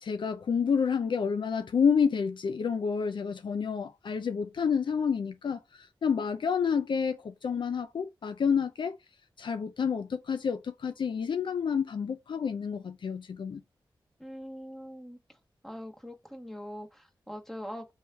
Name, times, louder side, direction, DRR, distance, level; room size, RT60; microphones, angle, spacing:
voice 1, 0.0-5.6 6.0-9.0 9.4-13.6, left 6 dB, 70° left, 0.4 m, -29 dB
voice 2, 14.2-15.4 15.6-17.9, equal, 5° left, 1.3 m, -42 dB
4.7 x 3.1 x 3.4 m
cardioid pair, 45°, 9 cm